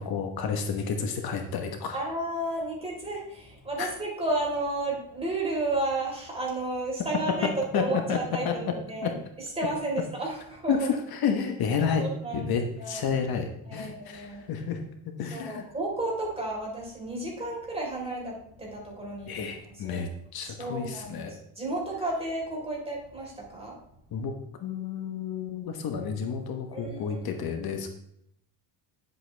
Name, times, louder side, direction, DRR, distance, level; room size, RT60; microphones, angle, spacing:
voice 1, 0.0-2.0 3.8-3.9 7.7-7.8 8.1-8.2 8.4-8.5 9.0-9.1 10.7-12.0 12.3-15.6 19.3-21.4 24.1-24.3 24.6-27.9, left 6 dB, 55° left, 5 dB, 1.2 m, -30 dB
voice 2, 1.9-10.9 12.0-13.2 13.6-14.5 15.3-19.5 19.8-20.1 20.4-23.7 26.7-27.2, right 2 dB, 15° right, -2 dB, 4.1 m, -32 dB
10.0 x 7.9 x 3.4 m, 0.77 s
cardioid pair, 115°, 43 cm